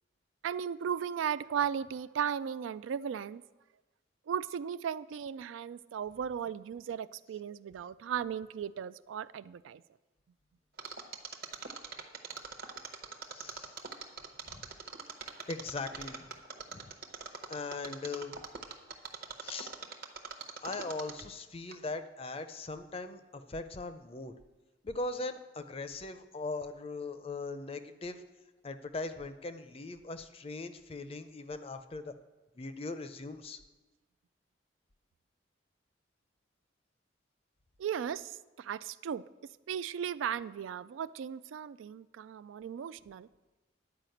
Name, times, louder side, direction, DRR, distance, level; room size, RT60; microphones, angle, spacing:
voice 1, 0.4-3.4 4.3-9.8 37.8-39.2 39.7-43.3, right 8 dB, 85° right, 16 dB, 0.3 m, -36 dB
Mechanisms, 10.8-21.4 21.7-21.8, right 5 dB, 50° right, 0.9 m, -42 dB
voice 2, 13.3-13.8 14.5-14.7 15.5-16.3 16.7-17.0 17.5-18.4 19.4-19.8 20.6-24.3 24.8-28.2 28.6-32.1 32.6-33.6, left 3 dB, 30° left, 10 dB, 0.5 m, -40 dB
10.5 x 4.9 x 7.7 m, 1.1 s
head